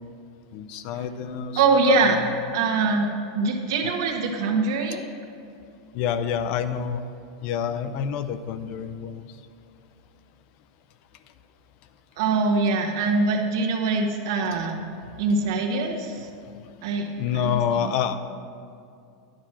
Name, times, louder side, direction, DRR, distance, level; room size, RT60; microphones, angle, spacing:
voice 1, 0.5-1.6 1.9-2.1 5.9-7.0 7.4-9.3 17.2-18.1, left 8 dB, 50° left, 11 dB, 0.5 m, -27 dB
voice 2, 1.6-2.2 2.5-3.1 3.3-5.0 12.2-14.8 15.2-16.3 16.8-17.9, right 3 dB, 70° right, 2 dB, 1.1 m, -23 dB
10.0 x 4.3 x 6.1 m, 2.4 s
supercardioid pair, 135°, 2 cm